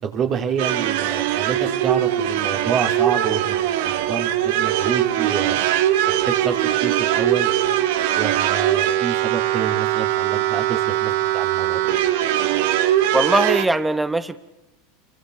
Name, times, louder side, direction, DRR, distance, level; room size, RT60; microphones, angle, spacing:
voice 1, 0.0-5.6 6.1-7.5 8.1-11.8, right 7 dB, 45° right, 3 dB, 3.6 m, -28 dB
sound 1, 0.6-13.6, right 12 dB, 70° right, 1.2 m, -21 dB
voice 2, 13.1-14.4, right 2 dB, 10° right, 12 dB, 1.0 m, -20 dB
28.0 x 24.0 x 4.8 m, 0.96 s
hypercardioid pair, 105°, 0 cm